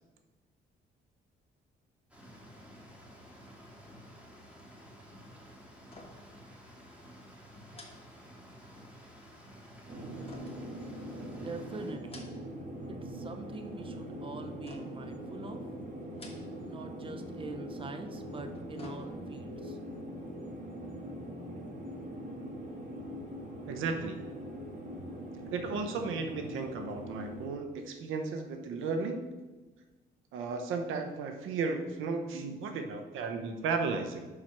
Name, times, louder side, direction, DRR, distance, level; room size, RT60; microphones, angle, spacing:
sound 1, 2.1-11.9, equal, 5° right, 2.3 m, -52 dB
sound 2, 5.9-6.4 6.7-6.8 7.7-8.8 10.3-11.4 11.9-12.7 13.0-13.6 14.7-15.2 16.0-16.8 17.1-17.2 18.3-19.5 19.9-20.0, left 2 dB, 30° left, 1.5 m, -53 dB
sound 3, 9.9-27.5, equal, 40° right, 1.8 m, -42 dB
voice 1, 11.3-12.3 12.9-15.7 16.7-19.8, right 3 dB, 25° right, 6 dB, 0.7 m, -44 dB
voice 2, 23.7-24.2 25.5-29.2 30.3-34.3, right 4 dB, 85° right, 5 dB, 0.9 m, -34 dB
5.8 x 4.9 x 5.9 m, 1.2 s
cardioid pair, 90°, 20 cm